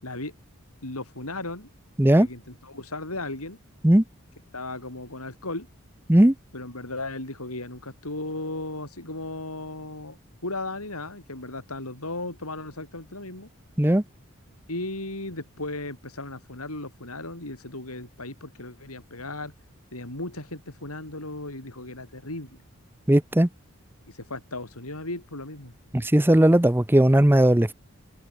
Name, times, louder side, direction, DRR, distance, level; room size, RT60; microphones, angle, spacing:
voice 1, 0.0-0.3 0.8-1.7 2.1-3.6 4.5-5.7 6.5-10.2 10.4-13.5 14.7-19.5 19.9-22.6 24.1-25.7, left 2 dB, 90° left, 8.0 m, -36 dB
voice 2, 23.1-23.5 25.9-27.7, right 1 dB, 10° right, 0.6 m, -17 dB
open air
head